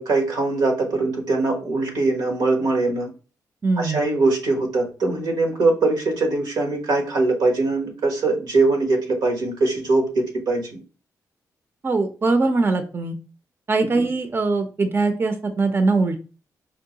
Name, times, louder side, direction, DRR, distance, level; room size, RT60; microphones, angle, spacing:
voice 1, 0.0-3.1 3.8-10.8 13.9-14.1, right 3 dB, 90° right, 2 dB, 1.0 m, -22 dB
voice 2, 3.6-4.0 11.8-13.2 13.7-16.2, right 3 dB, 35° right, 8 dB, 0.5 m, -21 dB
4.5 x 2.1 x 2.8 m, 0.36 s
cardioid pair, 55°, 7 cm